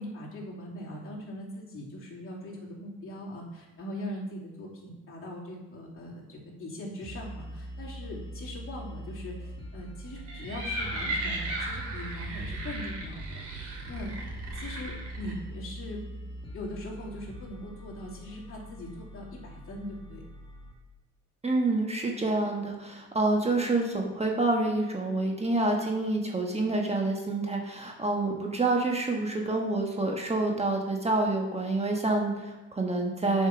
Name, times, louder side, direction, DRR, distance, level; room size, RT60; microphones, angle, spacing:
voice 1, 0.0-14.1 14.5-16.0 16.5-20.2, left 1 dB, 45° left, -5 dB, 3.0 m, -41 dB
sound 1, 7.0-20.7, right 1 dB, 15° left, 1.6 m, -42 dB
sound 2, 10.2-15.3, right 1 dB, 75° right, 2.8 m, -36 dB
voice 2, 21.4-33.5, right 2 dB, 20° right, 1 dB, 1.3 m, -27 dB
7.3 x 5.3 x 6.0 m, 1.2 s
cardioid pair, 90°, 30 cm